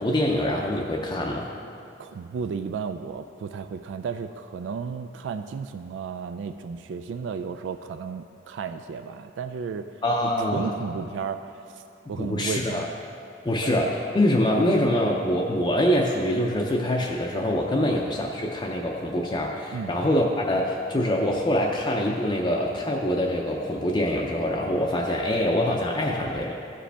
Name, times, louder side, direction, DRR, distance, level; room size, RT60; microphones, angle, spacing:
voice 1, 0.0-1.5 10.0-10.7 12.1-12.9 13.4-26.5, left 1 dB, 25° left, -1 dB, 0.5 m, -24 dB
voice 2, 2.0-9.9 10.2-11.5 12.1-12.9 13.6-13.7 19.7-19.9, right 6 dB, 75° right, 9 dB, 0.3 m, -33 dB
14.0 x 5.0 x 3.4 m, 2.7 s
head